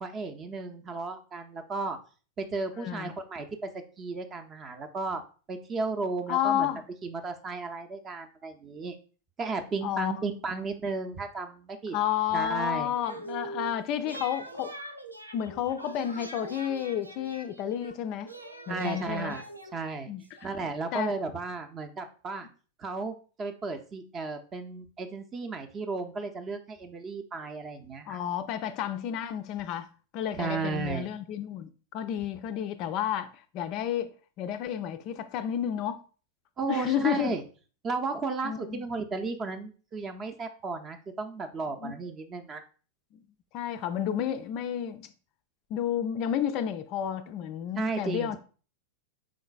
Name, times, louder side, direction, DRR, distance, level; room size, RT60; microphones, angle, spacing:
voice 1, 0.0-2.0 2.4-3.7 4.0-5.2 5.5-6.7 7.0-9.0 9.4-12.0 12.3-12.9 18.7-19.4 19.7-20.1 20.4-22.5 22.8-28.2 30.3-31.1 36.6-37.4 37.8-42.6 47.8-48.4, right 4 dB, 25° right, 0.6 m, -34 dB
voice 2, 2.8-3.1 6.3-6.8 9.8-10.1 11.9-14.7 15.3-18.3 18.7-19.4 20.1-20.2 20.6-21.1 28.1-36.0 36.7-37.4 38.4-38.9 41.8-41.9 43.5-45.1 45.7-48.4, left 10 dB, 40° left, 0.3 m, -31 dB
sound 1, 13.0-13.7 14.0-17.9 18.3-20.6, right 2 dB, 85° right, 0.5 m, -43 dB
5.0 x 3.8 x 2.3 m
figure-of-eight pair, 90°, 0 cm